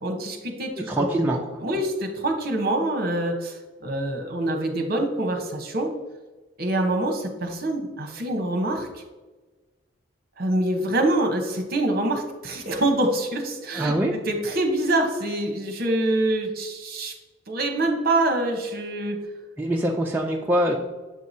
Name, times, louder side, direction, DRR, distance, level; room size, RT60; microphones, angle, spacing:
voice 1, 0.0-1.1 1.6-5.9 6.6-8.9 10.4-13.9 14.3-17.1 17.5-19.2, right 1 dB, 45° right, 4 dB, 0.9 m, -25 dB
voice 2, 0.9-1.6 13.7-14.1 19.6-20.8, right 1 dB, 10° right, -1 dB, 0.4 m, -24 dB
7.4 x 4.7 x 2.7 m, 1.2 s
head